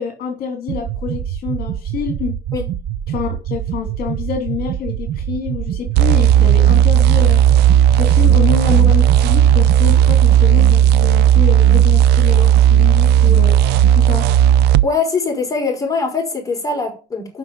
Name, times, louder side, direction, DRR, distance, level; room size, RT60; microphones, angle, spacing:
voice 1, 0.0-2.4 3.1-13.5 13.9-14.3, left 7 dB, 60° left, 3 dB, 2.9 m, -27 dB
sound 1, 0.7-10.2, right 10 dB, 60° right, 0.8 m, -26 dB
sound 2, 5.9-14.9, right 10 dB, 80° right, 0.5 m, -12 dB
voice 2, 14.8-17.4, left 4 dB, 20° left, -1 dB, 5.9 m, -22 dB
9.6 x 6.2 x 7.9 m, 0.35 s
cardioid pair, 110°, 17 cm